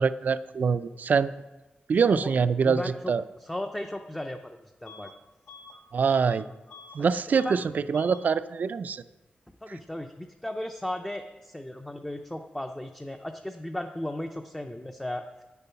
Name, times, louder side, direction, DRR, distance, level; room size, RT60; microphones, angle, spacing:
voice 1, 0.0-1.3 1.9-3.2 5.9-6.4 6.9-9.0, right 5 dB, 60° right, 15 dB, 0.3 m, -24 dB
voice 2, 2.6-3.1 3.4-5.1 7.4-7.6 9.6-15.4, left 1 dB, 10° left, 5 dB, 0.4 m, -36 dB
Bus / Alarm, 4.9-5.2 5.5-7.0 7.3-7.6 7.9-8.3, left 4 dB, 90° left, 1.3 m, -48 dB
9.0 x 6.9 x 5.6 m, 1.1 s
wide cardioid pair, 160°, 3 cm